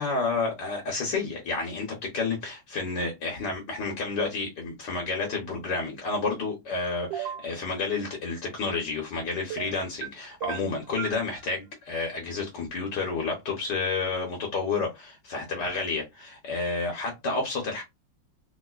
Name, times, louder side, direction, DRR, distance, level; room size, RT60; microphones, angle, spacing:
voice 1, 0.0-17.8, left 4 dB, 65° left, 1.4 m, -30 dB
sound 1, 7.1-7.5 9.5-10.1 10.4-11.2, right 10 dB, 75° right, 1.2 m, -34 dB
3.3 x 3.0 x 2.3 m
omnidirectional pair, 2.1 m